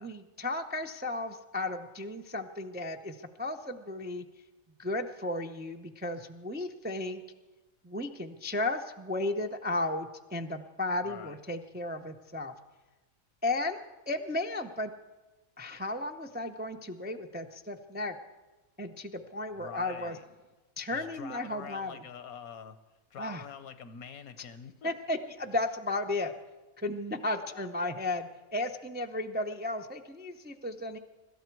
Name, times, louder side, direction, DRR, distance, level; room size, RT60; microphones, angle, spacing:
voice 1, 0.0-4.2 4.8-7.2 7.8-12.5 13.4-14.9 15.6-18.2 18.8-20.2 20.8-21.9 23.2-23.4 24.8-26.3 26.8-31.0, left 2 dB, 15° right, 5 dB, 0.3 m, -34 dB
voice 2, 11.0-11.4 19.5-20.2 20.9-22.8 23.1-24.9 27.5-27.7, left 7 dB, 85° left, 11 dB, 1.4 m, -45 dB
24.5 x 12.5 x 4.6 m, 1.2 s
omnidirectional pair, 1.5 m